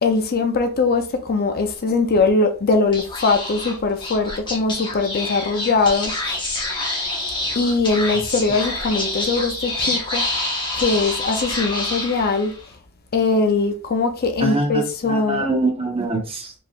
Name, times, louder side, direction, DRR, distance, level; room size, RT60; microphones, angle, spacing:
voice 1, 0.0-6.4 7.6-10.2 10.7-12.5 13.1-15.5, left 3 dB, 45° left, 0.5 m, -21 dB
Speech / Whispering, 2.9-12.7, left 2 dB, 20° left, 1.1 m, -27 dB
voice 2, 14.4-16.5, right 2 dB, 25° right, 0.9 m, -24 dB
4.2 x 3.3 x 2.4 m
head